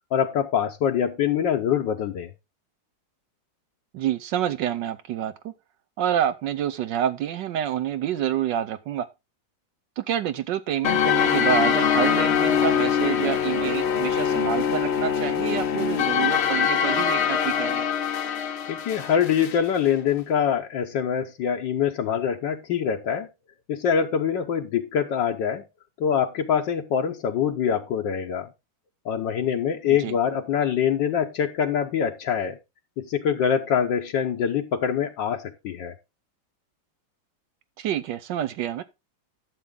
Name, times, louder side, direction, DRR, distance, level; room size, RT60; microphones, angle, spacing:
voice 1, 0.1-2.3 18.7-23.3 23.7-25.6 26.0-28.5 29.0-32.6 33.0-35.9, left 8 dB, 75° left, 1.5 m, -24 dB
voice 2, 3.9-5.5 6.0-9.1 10.0-17.9 29.9-30.1 37.8-38.8, right 10 dB, 75° right, 1.3 m, -28 dB
sound 1, 10.8-19.6, left 8 dB, 55° left, 0.7 m, -23 dB
12.0 x 7.0 x 3.7 m
omnidirectional pair, 2.0 m